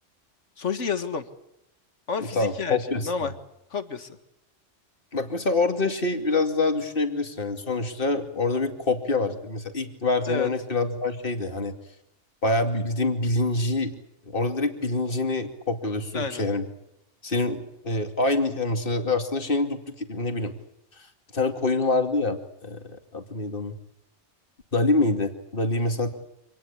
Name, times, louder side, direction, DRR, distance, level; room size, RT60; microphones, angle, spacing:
voice 1, 0.6-1.3 2.1-3.3 3.7-4.2 10.3-10.5 16.1-16.5, left 5 dB, 80° left, 10 dB, 2.1 m, -30 dB
voice 2, 2.4-3.1 5.1-11.7 12.4-13.9 14.3-16.6 17.2-20.5 21.0-21.1 21.3-23.7 24.7-26.1, left 2 dB, 50° left, 6 dB, 2.7 m, -26 dB
26.5 x 19.5 x 8.6 m, 0.81 s
omnidirectional pair, 1.2 m